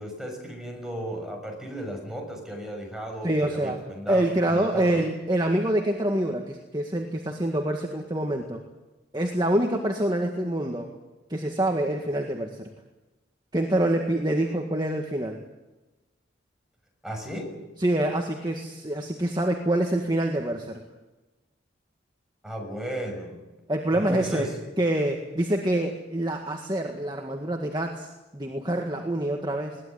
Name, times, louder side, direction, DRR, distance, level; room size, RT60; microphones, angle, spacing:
voice 1, 0.0-5.0 17.0-17.5 22.4-23.4 23.9-24.5, equal, 5° right, 2 dB, 6.2 m, -35 dB
voice 2, 3.2-8.6 9.1-10.9 11.3-12.7 13.5-15.4 17.8-20.8 23.7-24.5 24.8-29.8, right 1 dB, 20° right, 2 dB, 1.9 m, -26 dB
22.0 x 19.0 x 9.8 m, 1.1 s
head